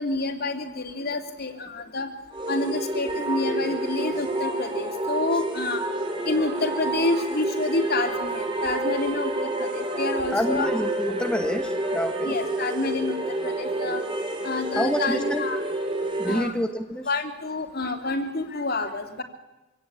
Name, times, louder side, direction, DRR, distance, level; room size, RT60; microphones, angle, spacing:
voice 1, 0.0-2.1 2.5-5.8 6.3-10.7 12.2-14.0 14.4-15.6 16.2-16.5 17.1-19.2, left 3 dB, 45° left, 6 dB, 2.9 m, -28 dB
sound 1, 2.3-16.5, right 2 dB, 25° right, 3.3 m, -29 dB
voice 2, 10.3-12.4 14.7-15.5 16.2-17.1, equal, 5° left, 6 dB, 1.1 m, -28 dB
25.5 x 17.5 x 8.7 m, 1.0 s
head